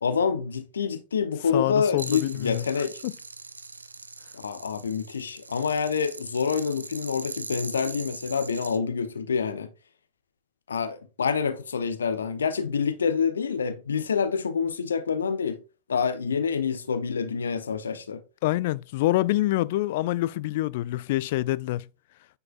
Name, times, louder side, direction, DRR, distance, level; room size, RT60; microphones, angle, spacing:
voice 1, 0.0-3.0 4.3-9.7 10.7-15.6 15.9-18.2, left 6 dB, 70° left, 0.7 m, -27 dB
voice 2, 1.5-2.7 3.0-3.1 18.4-21.8, left 16 dB, 50° left, 0.3 m, -26 dB
sound 1, 2.0-8.8, right 3 dB, 80° right, 0.4 m, -40 dB
9.4 x 4.8 x 2.4 m
figure-of-eight pair, 90°, 0 cm